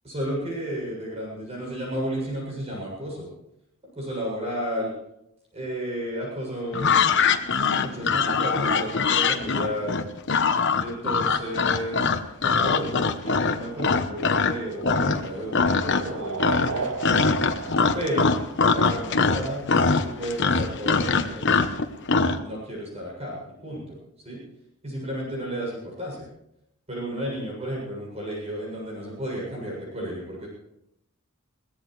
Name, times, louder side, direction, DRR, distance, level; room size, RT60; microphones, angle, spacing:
voice 1, 0.0-3.3 4.0-4.9 5.5-7.0 7.7-10.0 10.8-12.1 12.4-16.9 17.9-18.3 18.6-21.8 22.4-24.0 24.2-24.4 24.8-26.3 26.9-30.5, equal, 30° right, -3 dB, 7.2 m, -32 dB
sound 1, 6.7-14.6 14.8-15.3 15.5-16.1 16.4-22.4, left 5 dB, 60° left, 1.0 m, -22 dB
sound 2, 14.4-19.0, right 4 dB, 85° right, 0.8 m, -35 dB
21.5 x 17.5 x 3.3 m, 0.81 s
head